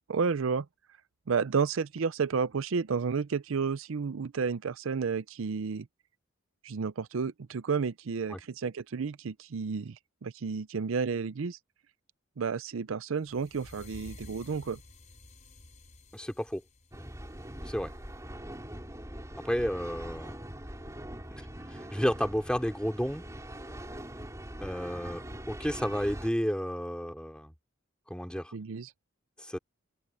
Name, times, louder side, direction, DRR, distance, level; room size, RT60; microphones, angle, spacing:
voice 1, 0.1-0.7 1.3-5.9 6.6-11.6 12.4-14.8 28.5-28.9, right 5 dB, 75° right, 0.5 m, -31 dB
sound 1, 13.2-18.3, left 2 dB, 35° left, 5.3 m, -52 dB
voice 2, 16.1-16.6 17.7-17.9 19.4-20.4 21.7-23.3 24.6-27.5 28.1-28.5 29.5-29.6, equal, 5° left, 2.7 m, -31 dB
sound 2, 16.9-26.3, right 1 dB, 15° right, 3.7 m, -42 dB
head